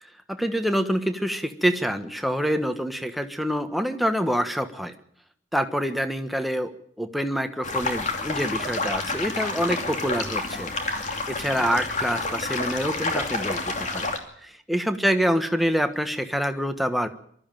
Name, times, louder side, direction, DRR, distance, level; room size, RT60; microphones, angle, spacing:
voice 1, 0.3-4.9 5.5-6.7 7.0-10.7 11.0-14.1 14.4-17.1, equal, ahead, 7 dB, 1.3 m, -26 dB
sound 1, 7.6-14.2, left 3 dB, 40° left, 2.8 m, -29 dB
23.0 x 13.5 x 9.1 m, 0.67 s
head